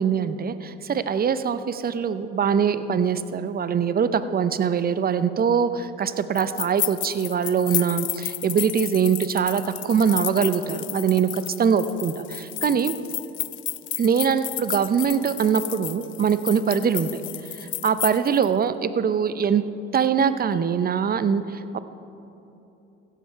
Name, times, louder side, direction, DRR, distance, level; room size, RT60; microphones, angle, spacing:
voice 1, 0.0-12.9 14.0-17.1 17.5-19.6 19.9-21.8, right 7 dB, 30° right, 12 dB, 0.6 m, -23 dB
sound 1, 6.4-18.5, left 14 dB, 45° left, 0.4 m, -32 dB
16.0 x 7.5 x 4.6 m, 2.9 s
hypercardioid pair, 70°, 29 cm